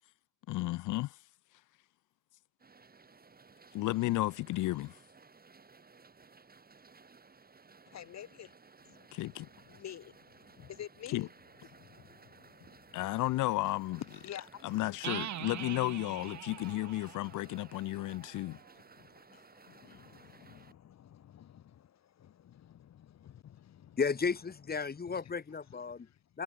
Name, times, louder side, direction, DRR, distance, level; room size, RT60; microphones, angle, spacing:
voice 1, 0.5-1.2 3.7-4.9 9.1-9.5 11.1-11.3 12.9-14.0 14.6-18.6, left 18 dB, 85° left, 0.8 m, -33 dB
sound 1, 2.6-20.7, right 4 dB, 30° right, 6.0 m, -58 dB
voice 2, 7.9-8.5 8.8-9.1 9.6-11.3 11.7-13.2 14.2-14.6 18.3-24.0 26.1-26.2, left 10 dB, 60° left, 1.9 m, -51 dB
sound 2, 15.0-18.7, right 11 dB, 65° right, 2.9 m, -43 dB
voice 3, 24.0-26.1 26.3-26.4, left 5 dB, 30° left, 2.0 m, -33 dB
cardioid pair, 90°, 30 cm